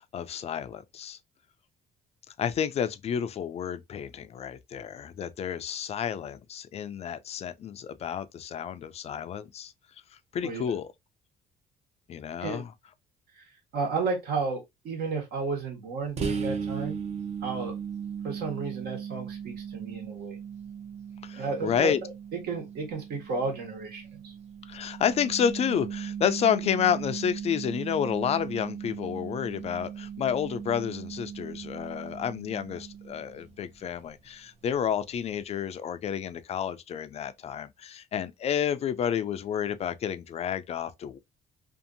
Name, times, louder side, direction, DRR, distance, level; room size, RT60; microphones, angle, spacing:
voice 1, 0.1-1.2 2.4-9.7 10.3-10.9 12.1-12.7 21.2-22.0 24.7-41.2, left 8 dB, 40° left, 0.4 m, -30 dB
voice 2, 13.3-17.0 17.4-17.7 18.2-20.4 21.3-24.3, right 4 dB, 70° right, 1.3 m, -33 dB
sound 1, 16.2-33.7, right 7 dB, 40° right, 0.6 m, -38 dB
2.7 x 2.5 x 2.5 m
cardioid pair, 110°, 17 cm